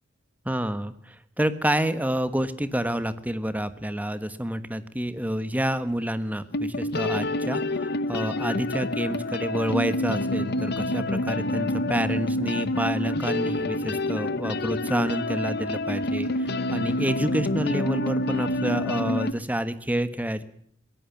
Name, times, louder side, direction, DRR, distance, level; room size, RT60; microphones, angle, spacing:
voice 1, 0.4-20.4, right 1 dB, 10° right, 12 dB, 1.3 m, -28 dB
sound 1, 6.0-6.1 6.5-19.3, left 1 dB, 60° left, 1.0 m, -28 dB
22.5 x 17.0 x 7.2 m, 0.64 s
head